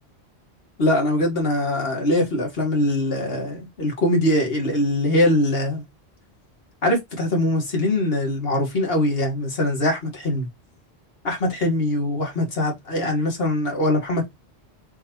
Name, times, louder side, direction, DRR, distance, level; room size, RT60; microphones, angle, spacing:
voice 1, 0.8-5.8 6.8-10.5 11.2-14.3, left 1 dB, 65° left, 1.6 m, -22 dB
3.6 x 3.1 x 2.9 m
omnidirectional pair, 1.1 m